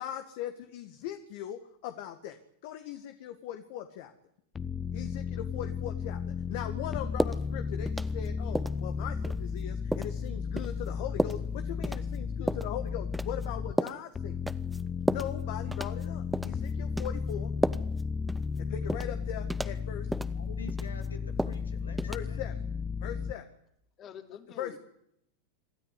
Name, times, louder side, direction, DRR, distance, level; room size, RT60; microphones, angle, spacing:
voice 1, 0.0-4.1 4.9-6.2 6.5-14.4 15.1-17.5 18.6-20.1 22.1-22.5 23.0-23.5 24.6-24.8, left 11 dB, 60° left, 1.9 m, -40 dB
sound 1, 4.6-13.7 14.1-23.3, left 5 dB, 20° left, 1.0 m, -34 dB
sound 2, 7.2-7.4 7.9-8.3 8.5-8.8 9.2-9.4 9.9-10.1 10.6-10.7 11.2-11.4 11.8-12.0 12.5-12.7 13.1-13.5 13.8-14.0 14.5-14.8 15.1-15.3 15.7-16.0 16.3-16.6 17.0-17.1 17.6-18.0 18.3-18.4 18.9-19.1 19.5-19.8 20.1-20.3 20.7-21.1 21.4-21.6 22.0-22.2, right 1 dB, 5° right, 1.0 m, -31 dB
voice 2, 20.3-22.5, left 4 dB, 90° left, 2.8 m, -47 dB
voice 3, 24.0-24.8, left 8 dB, 35° left, 3.2 m, -46 dB
26.0 x 13.0 x 9.9 m
hypercardioid pair, 95°, 0 cm